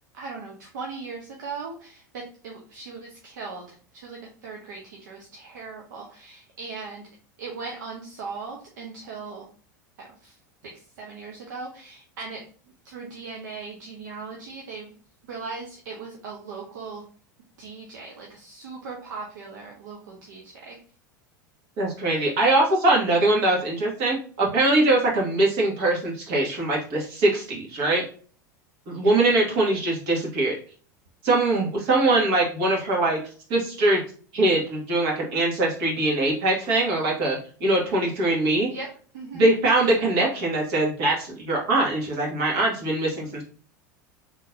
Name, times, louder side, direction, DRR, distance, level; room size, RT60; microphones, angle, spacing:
voice 1, 0.1-7.0 7.4-9.5 10.0-10.3 10.6-12.5 12.8-14.9 15.3-17.0 17.6-20.8 29.0-29.1 38.7-38.9 39.1-39.4, right 4 dB, 70° right, -1 dB, 0.9 m, -38 dB
voice 2, 21.8-28.0 28.9-30.5 31.2-33.2 33.5-34.0 34.3-38.7 39.3-43.4, right 2 dB, 55° right, -2 dB, 1.9 m, -22 dB
3.8 x 3.3 x 2.6 m, 0.42 s
hypercardioid pair, 85°, 10 cm